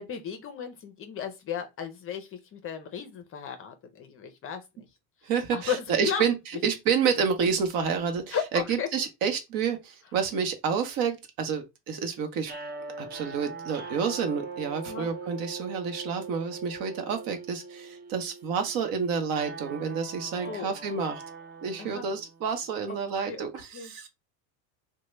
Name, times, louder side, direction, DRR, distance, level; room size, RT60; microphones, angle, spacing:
voice 1, 0.0-4.9 5.2-6.2 8.3-8.9 14.8-15.1 20.4-21.1 21.8-22.1 23.2-23.5 23.7-23.9, left 7 dB, 30° left, 0.6 m, -35 dB
voice 2, 5.2-6.3 6.6-8.4 8.7-12.5 13.0-21.2 21.6-24.1, right 6 dB, 50° right, 0.9 m, -29 dB
sound 1, 12.4-22.6, right 4 dB, 25° right, 0.5 m, -41 dB
3.0 x 2.2 x 3.1 m
supercardioid pair, 110°, 43 cm